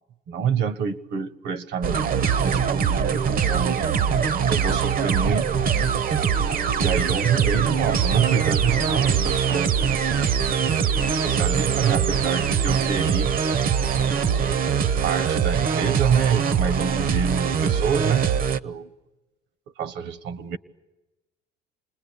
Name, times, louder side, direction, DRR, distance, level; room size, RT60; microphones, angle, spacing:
voice 1, 0.3-3.8 4.5-5.6 6.8-9.7 10.6-10.8 11.1-13.3 14.0-14.5 15.0-18.3 18.6-18.9 19.8-20.6, right 7 dB, 70° right, 16 dB, 1.4 m, -26 dB
sound 1, 1.8-18.6, right 7 dB, 50° right, 1.0 m, -22 dB
28.5 x 21.0 x 8.5 m, 1.0 s
supercardioid pair, 90°, 19 cm